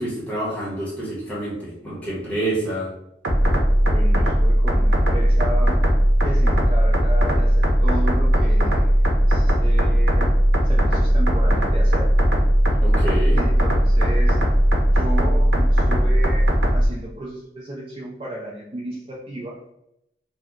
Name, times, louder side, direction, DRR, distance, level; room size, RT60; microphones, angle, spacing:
voice 1, 0.0-2.9 12.7-13.4, right 1 dB, 10° left, -7 dB, 1.0 m, -28 dB
sound 1, 3.2-16.9, equal, 85° right, 0.7 m, -18 dB
voice 2, 3.8-5.8 6.2-9.0 9.3-10.3 10.6-12.1 13.3-14.5 14.9-19.6, right 1 dB, 30° right, -3 dB, 0.3 m, -33 dB
2.7 x 2.1 x 3.5 m, 0.81 s
head